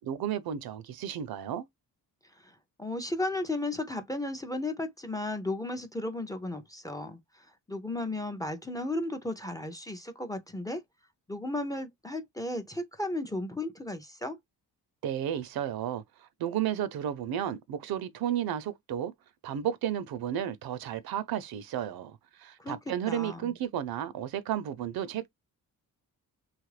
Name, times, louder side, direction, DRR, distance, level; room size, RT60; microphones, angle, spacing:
voice 1, 0.0-1.7 15.0-19.1 19.4-25.3, right 10 dB, 75° right, 0.6 m, -33 dB
voice 2, 2.3-10.8 11.3-14.4 22.6-23.5, left 2 dB, 10° left, 0.4 m, -35 dB
3.1 x 2.4 x 3.2 m
cardioid pair, 135°, 36 cm